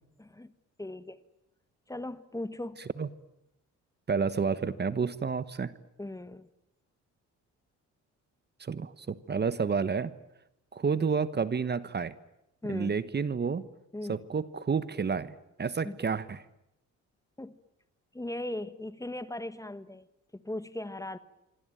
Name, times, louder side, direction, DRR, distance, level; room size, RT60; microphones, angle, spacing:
voice 1, 0.2-0.5 0.8-1.2 1.9-2.9 6.0-6.5 12.6-12.9 13.9-14.2 15.8-16.0 17.4-17.6 18.1-20.1 20.3-21.2, left 1 dB, 10° left, 13 dB, 1.4 m, -38 dB
voice 2, 4.1-5.7 8.6-10.1 10.7-12.2 12.7-13.7 14.1-16.4, right 5 dB, 35° right, 14 dB, 1.3 m, -30 dB
26.0 x 24.5 x 9.1 m, 0.83 s
cardioid pair, 90°, 30 cm